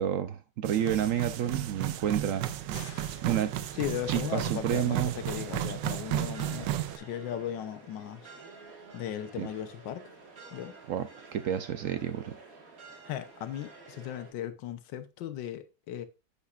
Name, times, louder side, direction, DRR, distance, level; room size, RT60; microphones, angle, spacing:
voice 1, 0.0-2.5 2.7-2.8 3.2-3.5 4.1-5.1 9.4-9.5 10.9-12.4, right 10 dB, 75° right, 0.7 m, -30 dB
sound 1, 0.6-7.0, right 12 dB, 90° right, 1.3 m, -34 dB
sound 2, 2.7-3.5, left 8 dB, 60° left, 0.8 m, -48 dB
voice 2, 3.7-8.2 8.9-10.1 10.5-10.8 13.0-16.1, left 10 dB, 85° left, 1.5 m, -37 dB
sound 3, 5.2-14.3, right 4 dB, 50° right, 2.2 m, -51 dB
9.7 x 7.2 x 2.4 m
omnidirectional pair, 1.9 m